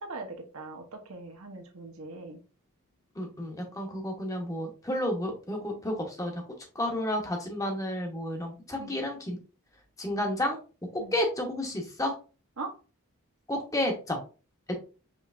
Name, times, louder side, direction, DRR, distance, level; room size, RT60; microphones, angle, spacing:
voice 1, 0.0-2.4 8.8-8.9 11.0-11.1 12.6-12.8, right 3 dB, 75° right, 4 dB, 0.9 m, -41 dB
voice 2, 3.2-6.4 6.7-9.4 10.0-10.6 11.1-12.1 13.5-14.2, left 1 dB, 15° left, 2 dB, 0.8 m, -31 dB
5.3 x 3.2 x 2.4 m, 0.34 s
head